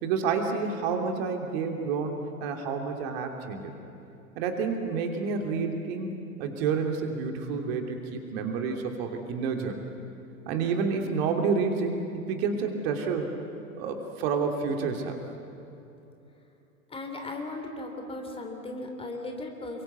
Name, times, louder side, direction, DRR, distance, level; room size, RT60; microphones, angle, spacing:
voice 1, 0.0-3.7 4.4-9.8 10.5-13.3 13.8-15.2, right 5 dB, 45° right, 3 dB, 3.0 m, -29 dB
voice 2, 16.9-19.8, left 2 dB, 15° left, 3 dB, 3.4 m, -37 dB
29.0 x 23.5 x 8.2 m, 2.8 s
figure-of-eight pair, 95°, 42 cm